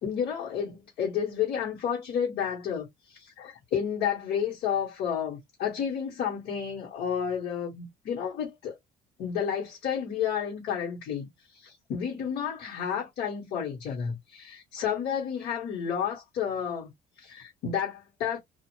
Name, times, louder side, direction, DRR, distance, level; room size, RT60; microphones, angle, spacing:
voice 1, 0.0-8.8 9.2-16.9 17.2-18.4, left 8 dB, 75° left, 1.3 m, -31 dB
2.5 x 2.4 x 2.9 m
cardioid pair, 110°, 17 cm